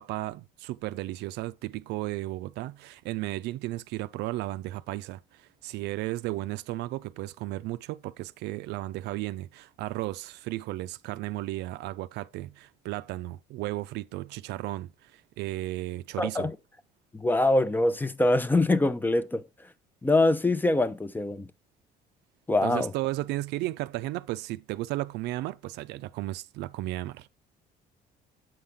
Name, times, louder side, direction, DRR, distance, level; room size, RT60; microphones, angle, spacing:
voice 1, 0.0-16.5 22.6-27.3, right 17 dB, 85° right, 0.4 m, -34 dB
voice 2, 16.2-16.6 17.1-19.4 20.0-21.5 22.5-22.9, left 2 dB, 10° left, 0.5 m, -24 dB
7.6 x 5.7 x 3.6 m
cardioid pair, 110°, 17 cm